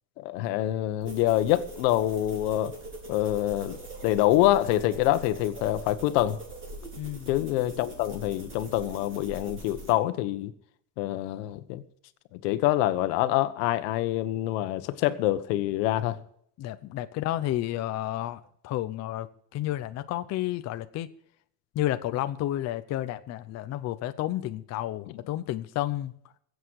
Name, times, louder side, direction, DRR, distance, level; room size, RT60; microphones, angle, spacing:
voice 1, 0.2-2.7 3.1-6.4 7.3-10.5 11.0-11.8 12.3-16.2 25.1-25.2, left 14 dB, 90° left, 1.4 m, -26 dB
sound 1, 1.0-9.9, right 2 dB, 25° right, 4.9 m, -43 dB
voice 2, 7.0-7.3 16.6-19.3 19.5-21.1 21.7-26.1, left 14 dB, 35° left, 0.7 m, -31 dB
22.5 x 8.2 x 4.7 m
cardioid pair, 160°, 47 cm